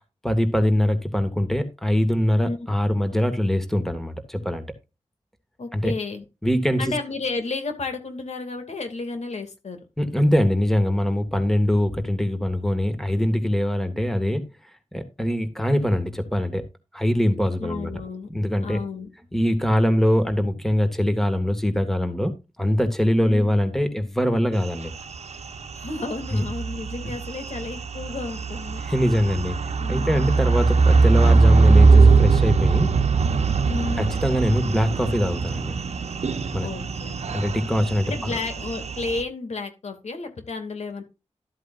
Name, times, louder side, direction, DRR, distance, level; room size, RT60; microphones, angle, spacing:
voice 1, 0.2-4.7 5.7-5.9 6.4-6.8 10.0-14.5 14.9-16.6 16.9-17.9 18.3-18.8 19.3-22.3 22.6-24.9 26.3-26.4 28.8-29.6 29.9-32.9 34.0-35.7 36.5-36.7 37.3-38.3, equal, 5° left, 2.0 m, -22 dB
voice 2, 5.6-6.2 6.8-9.8 17.6-18.3 18.6-19.1 23.2-23.5 25.7-28.8 29.8-30.3 33.6-34.1 36.6-37.5 38.0-41.0, left 3 dB, 75° left, 2.5 m, -32 dB
sound 1, 24.6-39.2, right 4 dB, 70° right, 1.1 m, -21 dB
13.0 x 8.1 x 2.6 m
wide cardioid pair, 75°, 12 cm